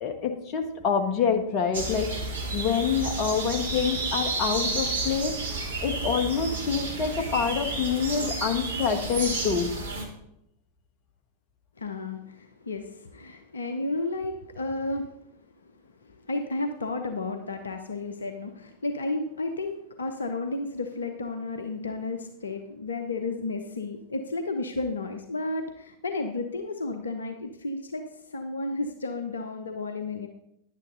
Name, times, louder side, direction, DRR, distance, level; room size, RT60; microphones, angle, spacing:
voice 1, 0.0-2.1 2.5-9.7, left 6 dB, 40° left, 6 dB, 1.4 m, -27 dB
sound 1, 1.7-10.1, right 3 dB, 70° right, 1.9 m, -31 dB
voice 2, 11.8-15.1 15.6-30.3, left 2 dB, 70° left, 6 dB, 0.8 m, -32 dB
10.5 x 9.0 x 4.0 m, 0.79 s
figure-of-eight pair, 90°, 0 cm